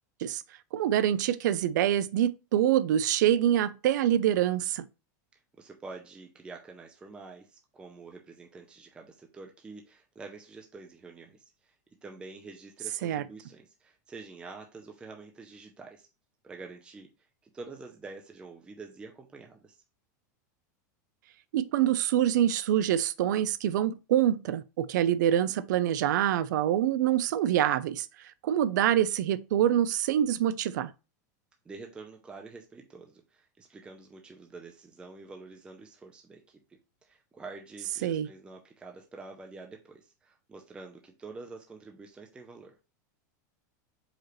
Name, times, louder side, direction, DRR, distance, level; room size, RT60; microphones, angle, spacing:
voice 1, 0.7-4.9 13.0-13.2 21.5-28.1 28.4-30.9 38.0-38.3, right 11 dB, 75° right, 0.4 m, -25 dB
voice 2, 5.6-11.7 12.0-16.1 16.4-17.1 17.5-19.8 31.6-36.4 37.0-42.8, right 3 dB, 10° right, 0.5 m, -47 dB
4.8 x 3.1 x 3.0 m
supercardioid pair, 155°, 10 cm